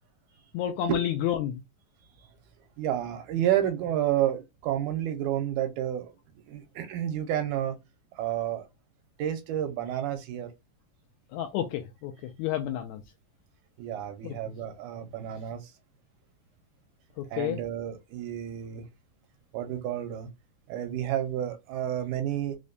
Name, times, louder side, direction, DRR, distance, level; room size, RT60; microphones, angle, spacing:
voice 1, 0.5-1.6 11.3-12.1 12.4-13.0 14.2-14.3 17.4-17.6, left 11 dB, 80° left, 1.7 m, -30 dB
voice 2, 2.8-6.1 6.5-7.8 8.2-8.7 9.2-10.5 13.8-15.6 17.3-18.8 19.5-20.3 20.7-22.6, right 11 dB, 85° right, 2.1 m, -30 dB
4.9 x 2.2 x 2.5 m
omnidirectional pair, 3.6 m